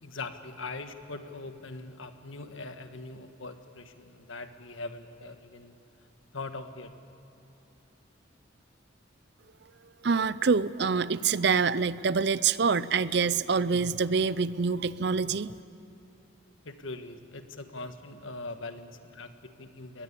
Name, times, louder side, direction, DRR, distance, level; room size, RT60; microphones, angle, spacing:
voice 1, 0.0-5.7 6.3-6.9 16.6-20.0, left 3 dB, 80° left, 8 dB, 1.5 m, -41 dB
voice 2, 10.0-15.6, right 5 dB, 55° right, 17 dB, 0.5 m, -26 dB
23.5 x 19.5 x 8.4 m, 3.0 s
head